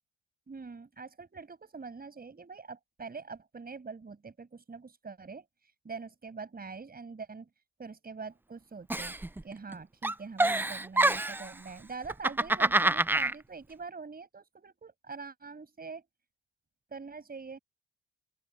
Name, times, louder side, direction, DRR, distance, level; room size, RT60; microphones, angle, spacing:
voice 1, 0.5-5.4 5.8-7.5 7.8-9.2 9.4-16.0 16.9-17.6, right 4 dB, 30° right, 6.1 m, -44 dB
Giggle, 8.9-9.7 10.0-11.5 12.0-13.3, right 2 dB, 5° right, 0.5 m, -26 dB
open air
cardioid pair, 90°, 30 cm